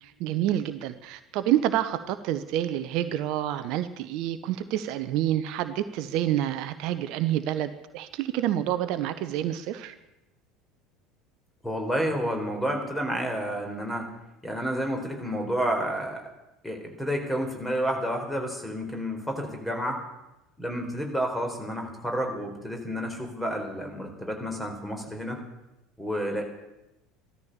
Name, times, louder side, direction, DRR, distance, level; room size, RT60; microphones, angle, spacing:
voice 1, 0.0-9.9, right 12 dB, 55° right, 11 dB, 0.8 m, -28 dB
voice 2, 11.6-14.1 14.4-16.2 16.6-20.0 20.6-25.4 26.0-26.4, equal, 5° left, 3 dB, 4.2 m, -30 dB
15.0 x 13.0 x 6.9 m, 0.95 s
figure-of-eight pair, 70°, 0 cm